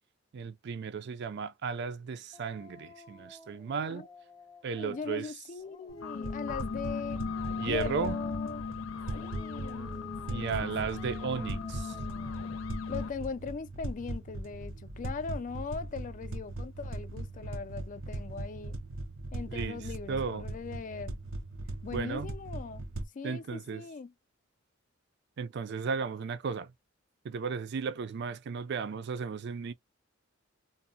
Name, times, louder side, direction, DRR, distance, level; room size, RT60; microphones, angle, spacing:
voice 1, 0.3-4.1 4.6-5.3 7.6-8.2 10.3-12.0 19.5-20.5 21.9-22.3 23.2-23.8 25.4-26.7 27.2-29.7, right 5 dB, 60° right, 0.4 m, -35 dB
Dog, 2.3-5.1 5.6-8.7 9.1-12.6, left 1 dB, 20° left, 0.7 m, -53 dB
voice 2, 4.8-7.3 7.6-8.6 9.2-11.0 12.9-18.8 19.3-21.2 21.8-22.9 23.1-24.1, left 5 dB, 40° left, 0.3 m, -40 dB
sound 1, 5.9-13.1, left 5 dB, 90° left, 0.6 m, -38 dB
sound 2, 6.2-23.1, right 2 dB, 75° right, 0.7 m, -40 dB
2.6 x 2.1 x 2.6 m
head